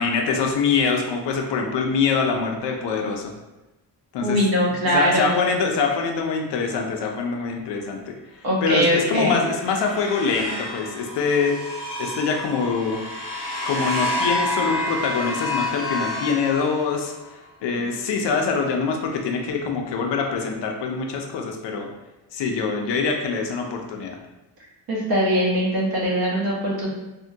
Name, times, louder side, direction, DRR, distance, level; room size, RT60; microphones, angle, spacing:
voice 1, 0.0-3.3 4.1-8.1 8.6-11.6 12.0-13.0 13.6-17.1 17.6-21.9 22.3-24.2, left 5 dB, 70° left, 2 dB, 0.5 m, -24 dB
voice 2, 4.2-5.4 8.4-9.4 24.9-26.9, equal, 55° right, -3 dB, 0.9 m, -21 dB
sound 1, 9.0-17.3, left 1 dB, 30° left, 1.0 m, -29 dB
3.5 x 2.2 x 2.6 m, 1.0 s
wide cardioid pair, 165°, 45 cm